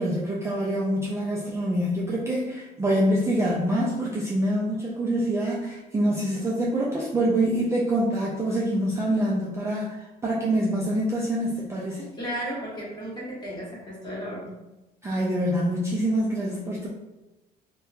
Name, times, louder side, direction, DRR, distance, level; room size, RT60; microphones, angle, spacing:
voice 1, 0.0-12.1 15.0-16.9, right 1 dB, 15° right, -5 dB, 0.4 m, -25 dB
voice 2, 12.2-14.5, equal, 25° left, -6 dB, 1.1 m, -34 dB
2.9 x 2.2 x 2.3 m, 0.99 s
cardioid pair, 110°, 17 cm